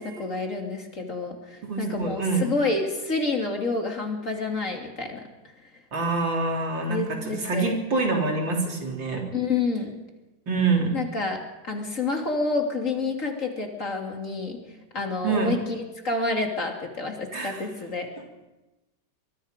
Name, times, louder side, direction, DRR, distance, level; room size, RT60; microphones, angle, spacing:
voice 1, 0.0-5.3 6.9-7.8 9.3-9.9 10.9-14.6 14.9-18.1, left 3 dB, 40° left, 2 dB, 3.0 m, -29 dB
voice 2, 1.6-2.5 5.9-9.2 10.5-11.0 15.2-15.5 17.3-17.7, right 3 dB, 70° right, 1 dB, 4.1 m, -26 dB
24.5 x 22.0 x 5.2 m, 1.1 s
omnidirectional pair, 2.1 m